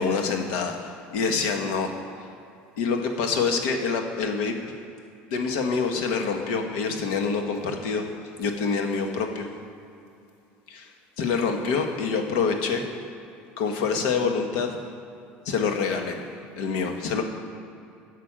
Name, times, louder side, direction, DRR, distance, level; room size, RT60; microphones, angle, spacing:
voice 1, 0.0-1.9 2.8-4.5 5.3-8.0 8.4-9.5 10.7-10.9 11.2-12.8 13.6-14.7 15.4-16.2 16.5-17.2, left 5 dB, 80° left, 4 dB, 1.6 m, -26 dB
11.0 x 6.7 x 8.9 m, 2.5 s
cardioid pair, 145°, 4 cm